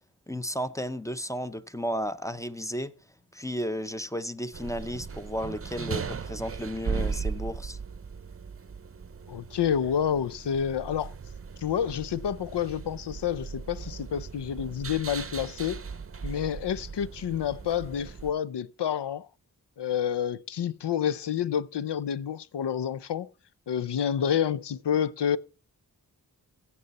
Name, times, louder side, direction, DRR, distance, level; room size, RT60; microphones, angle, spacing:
voice 1, 0.3-2.9 3.3-7.8, equal, 10° left, 0.6 m, -33 dB
sound 1, 4.5-18.3, right 5 dB, 35° right, 0.7 m, -38 dB
voice 2, 9.3-11.1 11.6-15.8 16.2-19.3 19.8-23.3 23.7-25.4, left 9 dB, 85° left, 0.6 m, -29 dB
15.5 x 6.9 x 4.1 m
wide cardioid pair, 110°, 40 cm